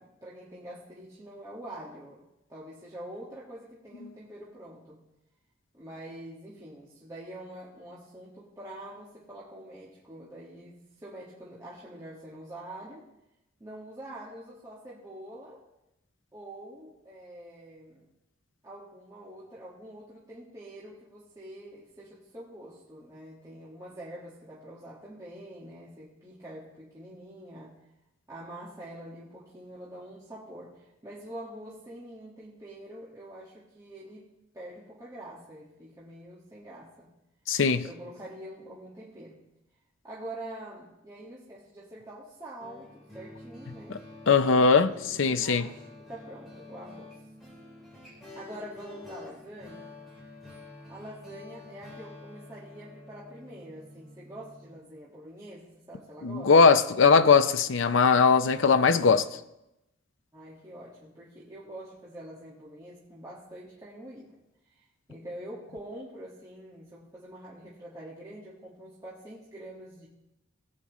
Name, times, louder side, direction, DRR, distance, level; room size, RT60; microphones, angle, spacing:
voice 1, 0.0-2.2 2.5-5.0 5.7-13.1 13.6-15.6 16.3-18.1 18.6-27.7 28.3-34.2 34.5-37.1 37.8-39.4 40.0-44.0 44.8-47.1 48.3-49.9 50.9-56.5 60.3-64.3 64.7-70.1, right 1 dB, 15° right, 1.7 m, -45 dB
voice 2, 37.5-37.8 43.9-44.0 44.3-45.7 56.2-59.3, left 5 dB, 70° left, 0.5 m, -20 dB
sound 1, 42.6-54.8, left 2 dB, ahead, 3.7 m, -48 dB
18.0 x 8.6 x 3.1 m
head